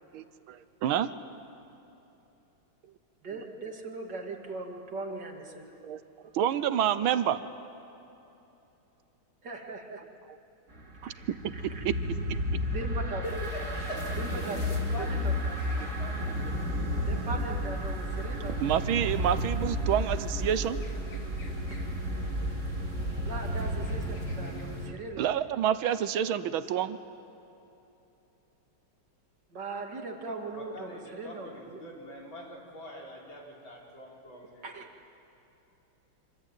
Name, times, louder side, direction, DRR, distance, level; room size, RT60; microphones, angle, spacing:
voice 1, 0.1-1.1 5.8-6.0 6.3-7.4 11.0-11.1 11.8-11.9 18.6-20.8 25.2-27.0, right 10 dB, 85° right, 13 dB, 1.7 m, -28 dB
voice 2, 3.2-5.8 9.4-10.0 11.0-11.8 12.7-13.2 14.2-14.6 15.0-15.3 17.1-18.6 23.2-25.3 29.5-31.8 34.6-34.9, right 3 dB, 55° right, 2 dB, 2.9 m, -39 dB
sound 1, 10.7-24.9, equal, 35° right, 2.5 m, -32 dB
sound 2, 13.2-24.9, left 1 dB, 90° left, 3.4 m, -50 dB
voice 3, 13.2-16.7 30.5-34.6, equal, 70° left, -2 dB, 5.0 m, -43 dB
25.5 x 25.5 x 9.1 m, 3.0 s
omnidirectional pair, 2.2 m